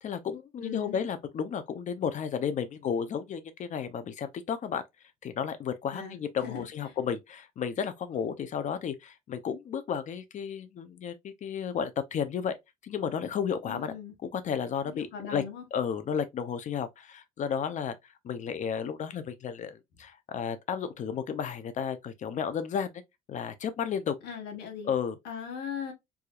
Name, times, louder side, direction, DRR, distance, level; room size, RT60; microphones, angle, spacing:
voice 1, 0.0-4.8 5.2-12.5 12.8-13.9 14.3-15.4 15.7-18.0 18.2-23.0 23.3-24.2 24.8-25.2, left 7 dB, 45° left, 0.7 m, -33 dB
voice 2, 0.6-1.1 5.9-7.0 13.7-14.1 14.8-15.6 24.2-24.9 25.2-25.9, left 8 dB, 80° left, 1.2 m, -39 dB
4.8 x 2.6 x 2.4 m
cardioid pair, 110°, 17 cm